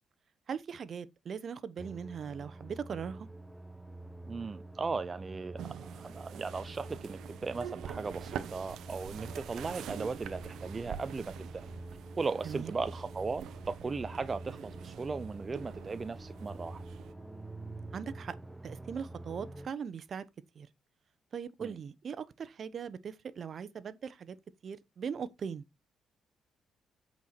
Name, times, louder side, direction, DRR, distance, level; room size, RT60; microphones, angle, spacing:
voice 1, 0.5-3.3 12.4-12.7 17.9-18.3 18.6-20.2 20.6-20.7 21.3-24.3 24.6-25.6, right 7 dB, 50° right, 0.9 m, -40 dB
sound 1, 1.8-19.7, right 2 dB, 5° right, 1.0 m, -47 dB
voice 2, 4.3-11.7 12.2-16.8 21.6-21.8, right 4 dB, 30° right, 0.5 m, -37 dB
sound 2, 5.6-17.1, right 10 dB, 80° right, 0.8 m, -46 dB
8.3 x 4.6 x 4.3 m
cardioid pair, 90°, 0 cm